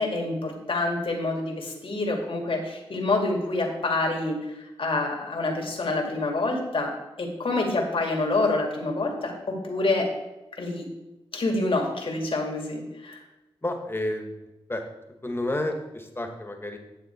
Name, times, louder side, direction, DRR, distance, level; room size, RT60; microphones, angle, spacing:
voice 1, 0.0-6.9 7.2-10.1 10.6-10.9 11.3-13.2, left 2 dB, 60° left, 1 dB, 2.2 m, -27 dB
voice 2, 13.6-14.4 14.7-14.9 15.2-16.8, left 1 dB, 20° left, 4 dB, 1.8 m, -30 dB
9.9 x 7.1 x 4.5 m, 1.0 s
cardioid pair, 50°, 10 cm